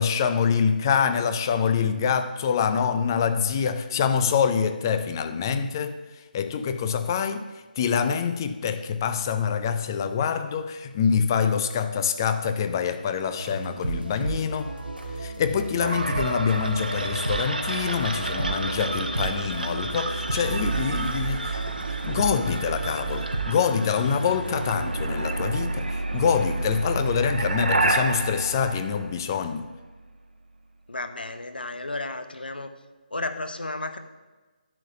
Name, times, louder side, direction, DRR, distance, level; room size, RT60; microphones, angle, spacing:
voice 1, 0.0-6.0 6.3-7.5 7.8-14.7 15.2-29.7, left 7 dB, 25° left, 0.5 m, -25 dB
sound 1, 13.4-24.8, right 3 dB, 85° right, 2.8 m, -32 dB
sound 2, 15.8-29.7, right 2 dB, 65° right, 1.1 m, -30 dB
voice 2, 30.9-32.7 33.1-34.0, left 2 dB, 70° left, 0.9 m, -33 dB
10.5 x 4.0 x 7.6 m
figure-of-eight pair, 150°, 5 cm